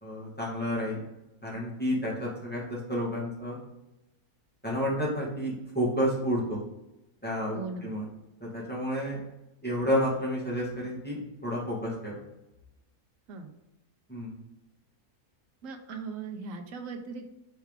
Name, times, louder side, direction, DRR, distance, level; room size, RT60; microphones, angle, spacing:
voice 1, 0.0-1.0 1.4-3.6 4.6-6.6 7.2-7.6 7.8-8.1 8.4-9.2 9.6-12.2 14.1-14.3, equal, 5° left, -5 dB, 1.8 m, -30 dB
voice 2, 7.5-7.9 13.3-13.5 15.6-17.2, right 4 dB, 60° right, 4 dB, 1.1 m, -38 dB
5.7 x 4.5 x 3.6 m, 0.93 s
omnidirectional pair, 1.6 m